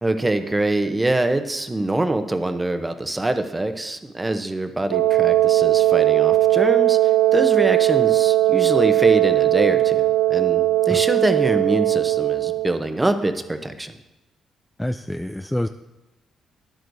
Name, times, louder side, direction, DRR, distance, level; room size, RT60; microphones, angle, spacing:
voice 1, 0.0-14.0, right 2 dB, 15° right, 9 dB, 0.8 m, -24 dB
Wind instrument woodwind instrument, 4.9-12.8, right 15 dB, 90° right, 0.4 m, -18 dB
voice 2, 14.8-15.7, left 1 dB, 5° left, 8 dB, 0.3 m, -27 dB
12.5 x 10.0 x 2.7 m, 1.0 s
cardioid pair, 90°, 0 cm